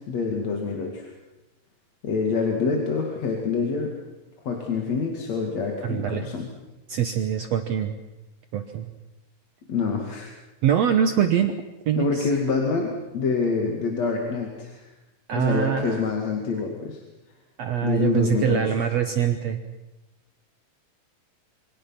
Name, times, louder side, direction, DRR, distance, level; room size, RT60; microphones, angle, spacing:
voice 1, 0.1-1.1 2.0-3.9 4.5-6.5 9.7-10.3 11.9-14.8 15.3-17.0 17.8-18.8, left 4 dB, 55° left, 1 dB, 3.4 m, -26 dB
voice 2, 5.8-6.3 6.9-8.0 8.5-8.9 10.6-11.5 11.9-12.3 15.3-16.1 17.6-19.6, right 9 dB, 60° right, 7 dB, 2.0 m, -24 dB
27.5 x 25.0 x 6.0 m, 1.0 s
omnidirectional pair, 3.8 m